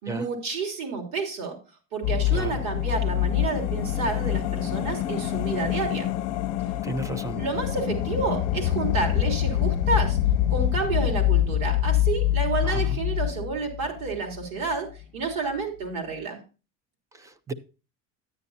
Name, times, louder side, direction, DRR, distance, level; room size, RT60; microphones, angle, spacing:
voice 1, 0.0-1.6 1.9-6.1 7.4-10.2 10.5-16.4, right 4 dB, 55° right, 3 dB, 3.2 m, -30 dB
sound 1, 2.0-14.5 14.7-14.8, left 12 dB, 70° left, 0.8 m, -25 dB
voice 2, 6.8-7.4 12.6-13.0 17.2-17.5, right 2 dB, 10° right, 15 dB, 0.3 m, -33 dB
9.7 x 9.6 x 2.7 m, 0.32 s
cardioid pair, 145°, 33 cm